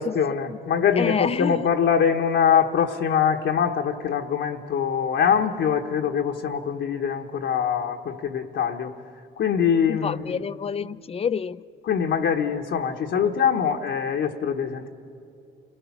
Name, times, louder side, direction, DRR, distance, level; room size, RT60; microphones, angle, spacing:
voice 1, 0.0-8.9 9.4-10.4 11.9-14.9, left 7 dB, 70° left, 2 dB, 1.2 m, -23 dB
voice 2, 1.0-1.7 5.4-5.5 9.9-11.6, left 6 dB, 30° left, 17 dB, 0.4 m, -28 dB
29.0 x 18.5 x 5.9 m, 2.5 s
cardioid pair, 90°, 20 cm